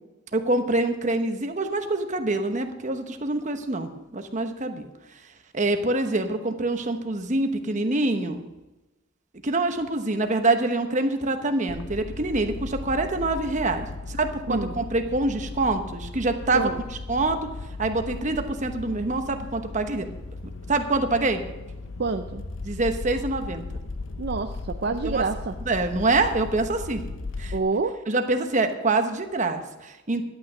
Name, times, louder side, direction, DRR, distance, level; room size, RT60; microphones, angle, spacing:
voice 1, 0.3-4.9 5.5-8.4 9.4-16.7 17.1-17.5 17.8-20.1 20.7-21.4 22.6-23.6 25.0-25.2 25.7-27.0 27.4-27.6 28.1-30.2, right 2 dB, 35° right, 6 dB, 1.0 m, -25 dB
sound 1, 11.7-27.6, left 3 dB, 75° left, 0.8 m, -37 dB
voice 2, 14.5-14.8 16.5-16.8 22.0-22.4 24.2-25.6 27.5-28.0, right 4 dB, 55° right, 7 dB, 0.5 m, -27 dB
11.5 x 8.8 x 6.2 m, 1.0 s
head